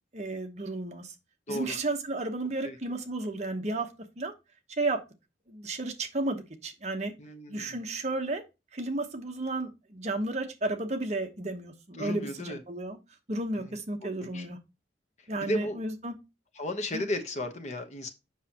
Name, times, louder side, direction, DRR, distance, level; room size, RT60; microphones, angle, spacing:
voice 1, 0.1-1.1 1.5-3.9 4.2-4.3 4.7-5.0 5.5-7.1 7.5-8.4 8.7-13.0 13.3-14.6 15.3-16.2 16.9-17.1, right 2 dB, 40° right, 6 dB, 1.0 m, -33 dB
voice 2, 7.2-7.8 11.9-12.6 13.6-13.7 14.0-14.5 15.4-15.8 16.6-18.1, left 1 dB, 40° left, 7 dB, 1.0 m, -34 dB
7.3 x 6.0 x 2.9 m, 0.25 s
head